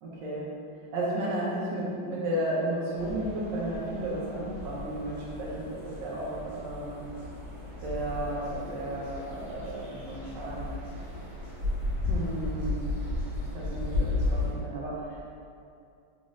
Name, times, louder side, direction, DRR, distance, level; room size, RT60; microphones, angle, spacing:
voice 1, 0.0-0.5 0.9-7.0 7.8-10.7 12.1-12.9 13.5-15.2, right 1 dB, 70° right, -6 dB, 1.2 m, -33 dB
sound 1, 2.9-14.5, left 2 dB, 45° right, 1.6 m, -34 dB
4.0 x 2.4 x 3.0 m, 2.5 s
omnidirectional pair, 2.3 m